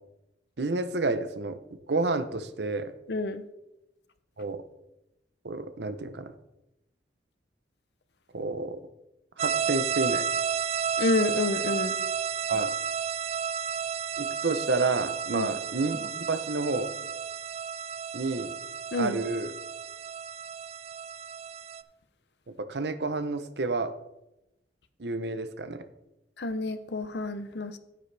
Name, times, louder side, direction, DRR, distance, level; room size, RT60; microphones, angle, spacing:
voice 1, 0.6-1.6 1.9-2.9 4.4-4.6 5.4-6.3 8.3-8.8 9.4-10.2 12.5-12.7 14.2-16.9 18.1-18.5 18.9-19.5 22.6-23.9 25.0-25.8, right 3 dB, 65° right, 11 dB, 0.7 m, -30 dB
voice 2, 3.1-3.4 11.0-11.9 15.3-15.5 18.9-19.2 26.4-27.8, left 2 dB, 65° left, 11 dB, 0.7 m, -29 dB
sound 1, 9.4-21.8, right 7 dB, 35° right, 0.3 m, -32 dB
9.5 x 9.5 x 3.4 m, 0.90 s
head